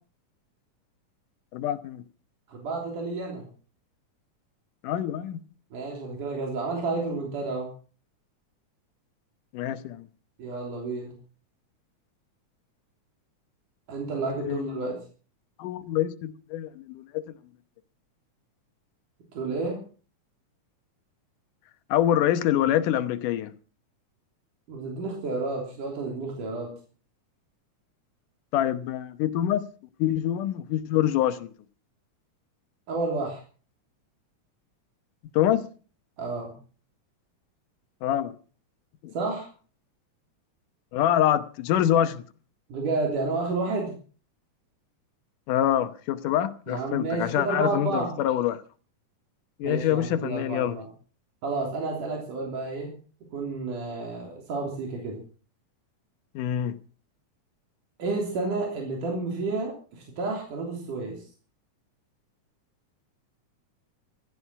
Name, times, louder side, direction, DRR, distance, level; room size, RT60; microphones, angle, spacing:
voice 1, 1.5-2.0 4.8-5.4 9.5-10.1 14.4-15.0 15.6-17.2 21.9-23.5 28.5-29.6 30.0-31.5 35.3-35.7 38.0-38.3 39.0-39.1 40.9-42.2 45.5-48.6 49.6-50.8 56.4-56.8, left 11 dB, 90° left, 2.6 m, -25 dB
voice 2, 2.5-3.5 5.7-7.7 10.4-11.1 13.9-15.0 19.3-19.8 24.7-26.7 32.9-33.4 36.2-36.5 39.1-39.5 42.7-43.9 46.7-48.1 49.6-50.9 51.4-52.9 53.3-55.2 58.0-61.2, right 3 dB, 80° right, 4.9 m, -30 dB
15.5 x 13.0 x 5.9 m
omnidirectional pair, 3.6 m